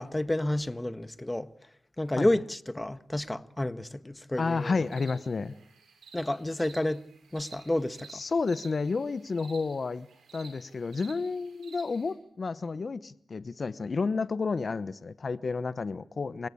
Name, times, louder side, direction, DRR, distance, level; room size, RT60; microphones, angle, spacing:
voice 1, 0.0-1.5 2.0-4.8 6.1-7.1 7.3-8.2, left 1 dB, 15° left, 1.5 m, -30 dB
voice 2, 4.4-5.6 8.1-10.1 10.3-16.5, left 4 dB, 50° left, 0.9 m, -31 dB
sound 1, 4.4-12.1, right 5 dB, 75° right, 6.8 m, -53 dB
28.0 x 17.5 x 8.4 m
supercardioid pair, 45°, 0 cm